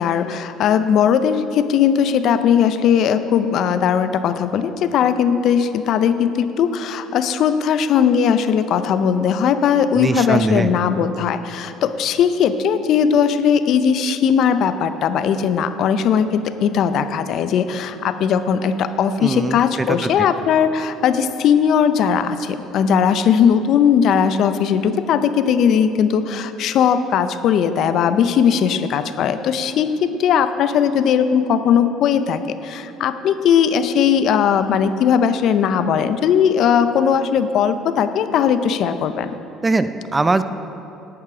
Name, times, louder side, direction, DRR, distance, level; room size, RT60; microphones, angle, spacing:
voice 1, 0.0-39.3, left 7 dB, 65° left, 11 dB, 0.5 m, -18 dB
voice 2, 9.9-10.7 19.2-20.3 39.6-40.4, right 3 dB, 20° right, 11 dB, 0.5 m, -21 dB
10.5 x 8.8 x 4.9 m, 3.0 s
supercardioid pair, 80°, 0 cm